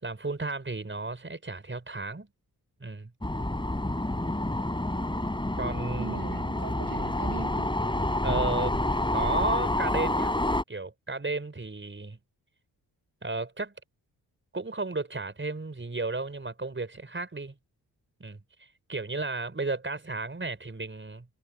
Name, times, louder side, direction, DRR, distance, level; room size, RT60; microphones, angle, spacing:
voice 1, 0.0-2.3 2.8-3.1 5.6-6.2 8.2-8.7 9.1-10.3 10.7-12.2 13.2-13.7 14.5-17.5 18.2-21.3, right 3 dB, 30° right, 5.3 m, -33 dB
sound 1, 3.2-10.6, left 1 dB, 10° left, 3.3 m, -28 dB
voice 2, 6.0-7.7 8.3-8.5, right 6 dB, 55° right, 4.7 m, -40 dB
hypercardioid pair, 40°, 42 cm